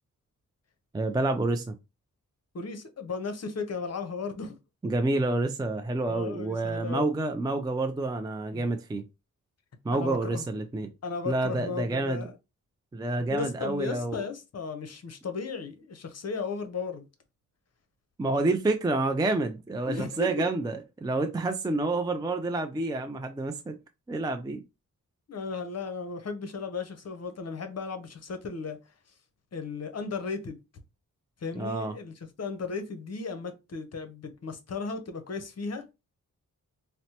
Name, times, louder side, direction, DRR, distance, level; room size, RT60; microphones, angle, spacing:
voice 1, 0.9-1.8 4.8-9.0 9.8-10.9 11.2-12.2 12.9-14.2 18.2-23.7 24.1-24.6 31.6-31.9, right 2 dB, 15° right, 0.4 m, -28 dB
voice 2, 2.5-4.6 6.1-7.1 8.5-8.7 9.9-10.4 11.0-12.3 13.3-17.1 19.9-20.5 25.3-28.8 29.5-30.6 31.4-35.8, left 4 dB, 50° left, 0.8 m, -35 dB
4.1 x 2.1 x 2.8 m
cardioid pair, 75°, 32 cm